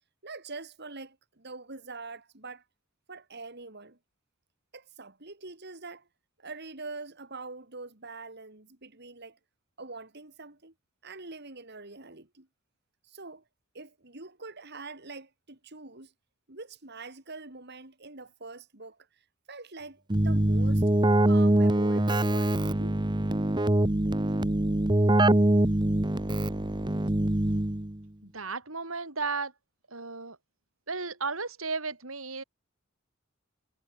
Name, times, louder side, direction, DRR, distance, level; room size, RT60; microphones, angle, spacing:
voice 1, 0.2-2.6 3.1-4.0 4.7-6.1 6.4-9.4 9.8-10.7 11.0-12.5 13.0-13.4 13.7-16.1 16.5-20.8 21.3-23.0, right 3 dB, 55° right, 3.8 m, -44 dB
Keyboard (musical), 20.1-28.0, right 1 dB, 20° right, 1.1 m, -24 dB
voice 2, 28.2-29.5 29.9-30.4 30.9-32.4, right 4 dB, 85° right, 5.1 m, -34 dB
head